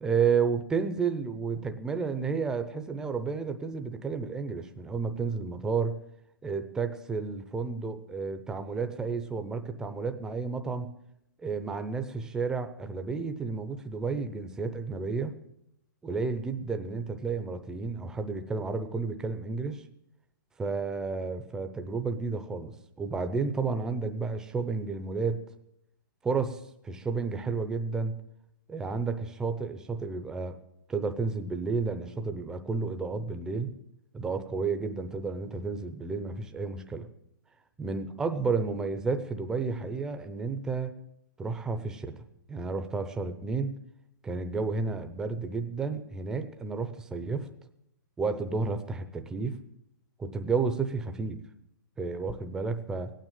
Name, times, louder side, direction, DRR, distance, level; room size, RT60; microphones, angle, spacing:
voice 1, 0.0-6.0 6.4-10.9 11.4-15.3 16.0-19.8 20.6-25.4 26.2-28.2 28.7-30.6 30.9-33.7 34.1-37.1 37.8-40.9 41.4-42.2 42.5-43.7 44.2-47.5 48.2-49.6 50.2-51.4 52.0-53.1, right 4 dB, 5° right, 7 dB, 0.6 m, -31 dB
16.5 x 9.2 x 7.5 m, 0.79 s
hypercardioid pair, 165°, 11 cm